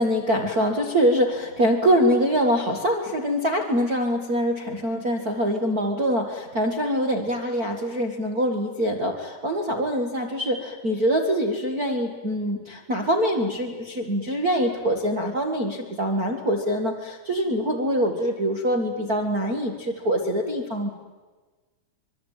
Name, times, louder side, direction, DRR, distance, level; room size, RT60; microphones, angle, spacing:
voice 1, 0.0-20.9, equal, 80° right, 1 dB, 0.8 m, -24 dB
25.0 x 23.0 x 9.2 m, 1.3 s
omnidirectional pair, 4.9 m